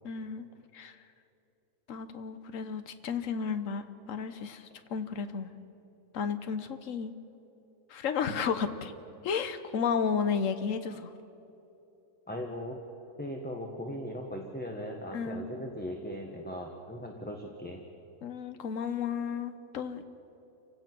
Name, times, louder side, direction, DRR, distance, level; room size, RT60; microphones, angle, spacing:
voice 1, 0.0-0.5 0.7-1.0 1.9-5.5 6.1-7.1 7.9-8.9 9.2-11.1 15.1-15.4 18.2-20.1, left 6 dB, 60° left, 10 dB, 1.4 m, -33 dB
voice 2, 12.3-12.8 13.2-17.8, equal, 5° left, 1 dB, 1.4 m, -38 dB
29.0 x 17.0 x 6.2 m, 2.9 s
omnidirectional pair, 1.6 m